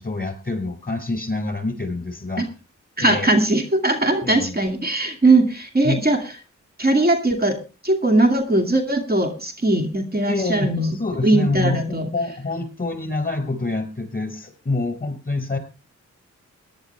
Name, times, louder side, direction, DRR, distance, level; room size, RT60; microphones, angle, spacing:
voice 1, 0.0-2.4 3.0-3.3 4.2-4.5 5.8-6.0 10.3-15.6, left 2 dB, 30° left, 8 dB, 5.0 m, -26 dB
voice 2, 3.0-6.2 6.8-7.6 7.8-10.9 11.2-12.1, right 2 dB, 30° right, 5 dB, 2.4 m, -19 dB
18.0 x 11.0 x 3.4 m, 0.30 s
cardioid pair, 50°, 31 cm